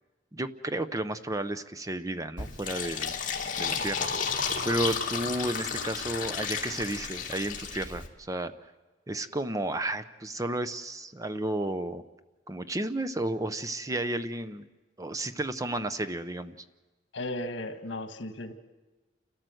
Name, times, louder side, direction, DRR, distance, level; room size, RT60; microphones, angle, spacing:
voice 1, 0.3-3.1 3.6-4.1 4.6-8.5 9.1-12.0 12.5-14.7 15.0-16.6, right 1 dB, 20° right, 11 dB, 0.7 m, -32 dB
Fill (with liquid), 2.4-8.1, left 6 dB, 45° left, 2.3 m, -32 dB
voice 2, 17.1-18.5, left 1 dB, 80° left, 8 dB, 1.6 m, -35 dB
29.5 x 13.5 x 7.8 m, 1.2 s
head